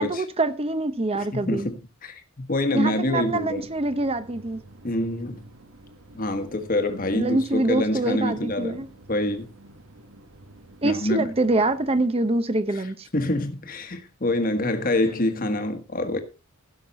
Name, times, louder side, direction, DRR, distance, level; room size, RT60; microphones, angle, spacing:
voice 1, 0.0-1.7 2.7-4.6 7.1-8.9 10.8-13.1, right 2 dB, 25° right, 0.8 m, -25 dB
voice 2, 1.3-3.7 4.8-5.4 6.1-8.8 9.1-9.5 10.8-11.3 12.7-12.8 13.1-16.2, left 1 dB, 40° left, 1.4 m, -26 dB
sound 1, 3.1-12.0, right 1 dB, 70° right, 1.4 m, -49 dB
16.0 x 6.0 x 4.1 m
head